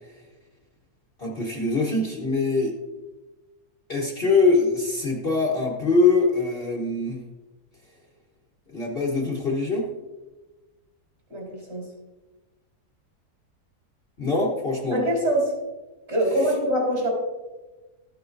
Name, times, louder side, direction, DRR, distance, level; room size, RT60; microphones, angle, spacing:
voice 1, 1.2-2.8 3.9-7.2 8.7-9.9 14.2-15.0, left 3 dB, 40° left, -3 dB, 1.3 m, -23 dB
voice 2, 11.3-11.9 14.9-15.5 16.1-17.1, right 1 dB, 40° right, -3 dB, 3.9 m, -24 dB
14.5 x 7.8 x 2.6 m, 1.2 s
omnidirectional pair, 1.7 m